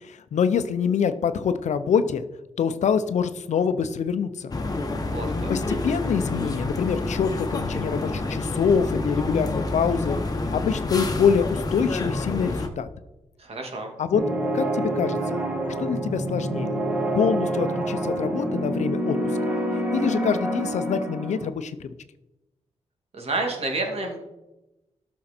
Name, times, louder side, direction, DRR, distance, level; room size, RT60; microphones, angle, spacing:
voice 1, 0.1-2.2 2.6-4.5 5.5-10.2 10.5-12.9 14.0-14.2 14.5-15.2 15.8-16.7 17.1-19.2 19.4-19.5 19.9-21.9, left 7 dB, 75° left, 11 dB, 0.7 m, -25 dB
sound 1, 4.5-12.7, left 2 dB, 30° left, 1.3 m, -28 dB
voice 2, 5.1-5.5 13.4-13.9 23.1-24.2, right 2 dB, 55° right, 2 dB, 2.4 m, -29 dB
sound 2, 14.1-21.5, right 1 dB, 10° right, 2.0 m, -27 dB
13.0 x 6.3 x 4.4 m, 0.97 s
wide cardioid pair, 105°, 12 cm